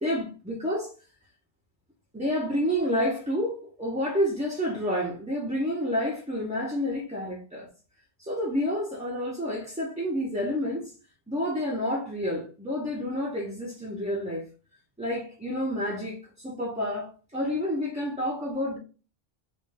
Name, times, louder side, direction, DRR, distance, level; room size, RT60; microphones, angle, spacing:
voice 1, 0.0-0.9 2.1-7.7 8.2-10.9 11.3-14.5 15.0-18.8, equal, 10° right, 0.6 m, -29 dB
3.4 x 2.6 x 3.3 m
omnidirectional pair, 1.1 m